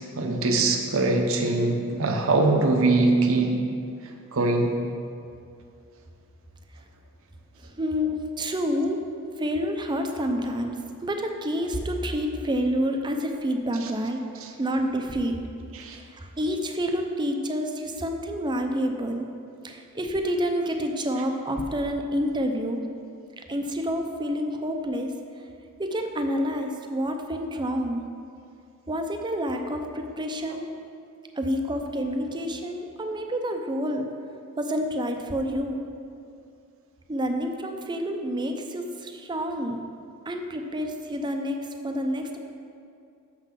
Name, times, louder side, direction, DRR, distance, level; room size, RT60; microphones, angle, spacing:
voice 1, 0.0-3.5 4.3-4.7 14.4-14.5 15.7-16.0, right 2 dB, 65° right, 3 dB, 0.9 m, -22 dB
voice 2, 7.6-9.0 9.3-14.2 14.6-15.4 15.9-19.3 19.6-22.8 23.4-25.1 25.8-28.1 28.9-30.7 31.4-34.1 34.6-35.8 37.1-39.8 40.3-42.4, equal, 20° right, 4 dB, 0.6 m, -28 dB
6.8 x 5.9 x 5.7 m, 2.5 s
head